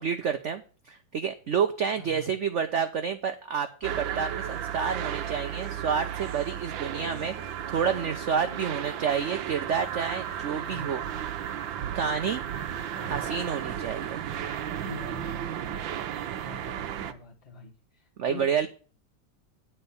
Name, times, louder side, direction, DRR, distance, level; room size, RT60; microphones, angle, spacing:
voice 1, 0.0-11.0 11.9-12.4 13.0-14.2 18.2-18.7, right 7 dB, 65° right, 8 dB, 0.7 m, -29 dB
voice 2, 2.0-2.3 10.6-10.9 12.9-13.3 14.6-15.6 16.4-18.7, left 4 dB, 30° left, -5 dB, 1.5 m, -45 dB
sound 1, 3.8-17.1, right 9 dB, 80° right, 1.5 m, -34 dB
9.8 x 4.5 x 6.9 m, 0.38 s
omnidirectional pair, 2.1 m